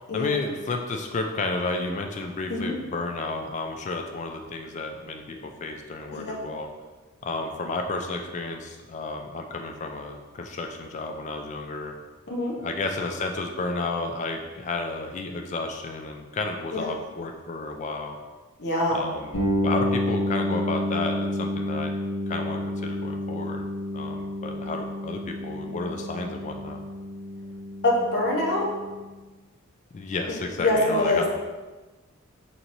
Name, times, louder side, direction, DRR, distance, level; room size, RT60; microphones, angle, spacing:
voice 1, 0.1-6.7 7.2-11.9 12.6-18.2 18.9-19.4 19.6-21.9 22.3-23.7 23.9-26.8 29.9-31.3, left 3 dB, 35° left, 4 dB, 0.3 m, -32 dB
voice 2, 18.6-19.0 27.8-28.7 30.6-31.3, left 1 dB, 50° left, -3 dB, 0.8 m, -24 dB
sound 1, 19.3-29.0, left 1 dB, 85° left, 1.2 m, -30 dB
4.4 x 2.8 x 2.6 m, 1.2 s
head